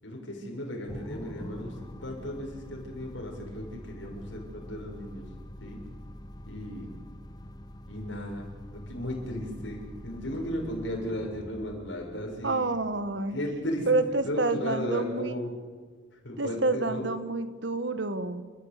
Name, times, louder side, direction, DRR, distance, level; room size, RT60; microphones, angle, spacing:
voice 1, 0.0-5.3 5.6-5.8 6.4-6.9 7.9-12.7 13.3-13.9 14.2-15.5 16.1-17.0, left 1 dB, 85° left, 0 dB, 6.9 m, -35 dB
sound 1, 0.9-15.4, left 1 dB, 20° left, 1.2 m, -45 dB
voice 2, 12.4-13.4 13.9-15.4 16.4-18.4, right 2 dB, 70° right, 11 dB, 1.7 m, -28 dB
29.0 x 14.0 x 8.5 m, 1.5 s
head